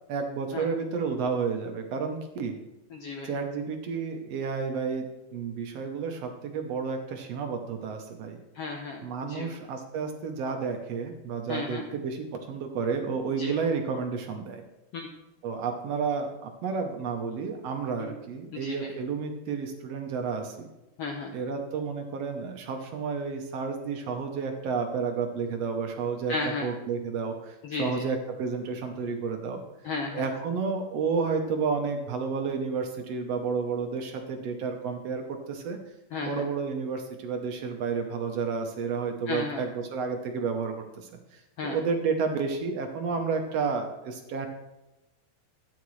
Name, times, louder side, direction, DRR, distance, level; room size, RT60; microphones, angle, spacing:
voice 1, 0.1-2.5 3.2-8.4 9.0-14.6 15.4-20.7 21.3-26.3 26.6-29.6 30.1-35.8 36.2-44.5, right 5 dB, 70° right, 4 dB, 1.6 m, -31 dB
voice 2, 2.9-3.3 8.5-9.5 11.5-11.8 13.4-13.6 14.9-15.1 18.0-18.1 18.5-18.9 21.0-21.3 26.3-26.7 27.6-28.1 29.8-30.3 36.1-36.4 39.3-39.6 41.6-41.8, left 3 dB, 80° left, 2 dB, 1.3 m, -34 dB
13.0 x 9.7 x 3.2 m, 0.95 s
omnidirectional pair, 3.9 m